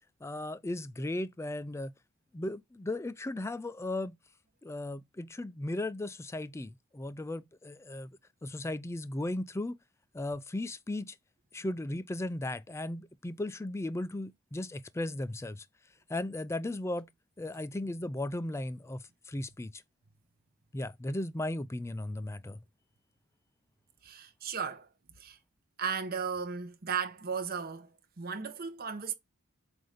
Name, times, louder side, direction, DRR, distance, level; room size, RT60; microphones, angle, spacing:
voice 1, 0.2-1.9 2.3-4.2 4.6-8.1 8.4-9.8 10.1-11.2 11.5-15.7 16.1-17.1 17.4-19.8 20.7-22.6, left 1 dB, 15° left, 0.3 m, -36 dB
voice 2, 24.0-24.9 25.2-25.4 25.8-29.1, right 6 dB, 45° right, 0.9 m, -36 dB
7.7 x 2.6 x 5.0 m
head